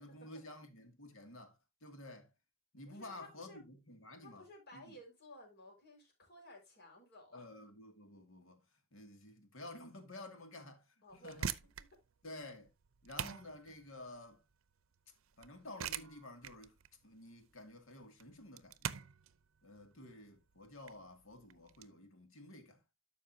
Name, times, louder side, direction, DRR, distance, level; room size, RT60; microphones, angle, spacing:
voice 1, 0.0-2.3 2.7-4.4 4.7-5.0 7.3-8.6 8.9-10.8 11.1-11.5 12.2-12.7 13.0-14.4 15.4-16.8 17.0-19.0 19.6-22.8, left 2 dB, 70° left, 2.2 m, -52 dB
voice 2, 2.8-3.6 4.2-7.5 11.0-12.0 19.8-19.9, left 1 dB, 55° left, 4.9 m, -57 dB
sound 1, 11.1-21.9, right 8 dB, 70° right, 0.6 m, -45 dB
12.5 x 5.5 x 2.7 m
head